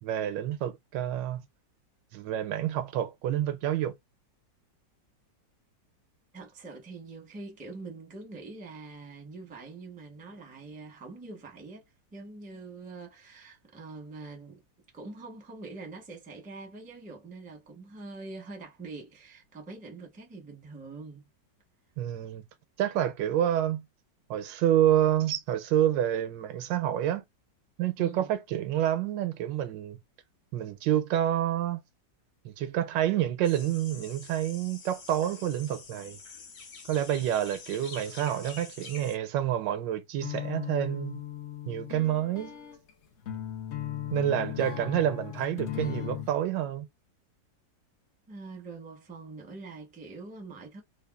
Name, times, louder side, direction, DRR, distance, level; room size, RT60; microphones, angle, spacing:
voice 1, 0.0-1.5 2.1-4.0 22.0-22.4 22.8-23.8 24.3-27.2 27.8-30.0 30.5-31.8 32.4-36.2 36.9-41.2 41.7-42.5 44.1-46.9, right 11 dB, 90° right, 1.3 m, -28 dB
voice 2, 6.3-14.6 14.9-21.3 28.0-28.3 48.3-50.8, right 3 dB, 10° right, 0.5 m, -44 dB
sound 1, 33.4-39.2, left 4 dB, 65° left, 1.3 m, -47 dB
sound 2, 40.2-46.3, left 11 dB, 80° left, 0.6 m, -37 dB
3.4 x 2.2 x 2.2 m
omnidirectional pair, 1.9 m